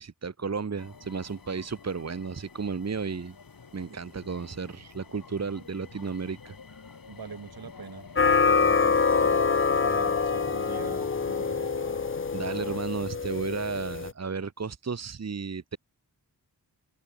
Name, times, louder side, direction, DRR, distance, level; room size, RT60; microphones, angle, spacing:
voice 1, 0.0-3.3 3.7-6.8 12.3-15.8, right 5 dB, 40° right, 1.4 m, -33 dB
sound 1, 0.8-12.8, left 5 dB, 55° left, 6.5 m, -43 dB
voice 2, 7.1-9.4 9.8-11.7, right 6 dB, 65° right, 3.3 m, -42 dB
sound 2, 8.2-14.1, left 5 dB, 30° left, 0.9 m, -25 dB
open air
wide cardioid pair, 100°, 40 cm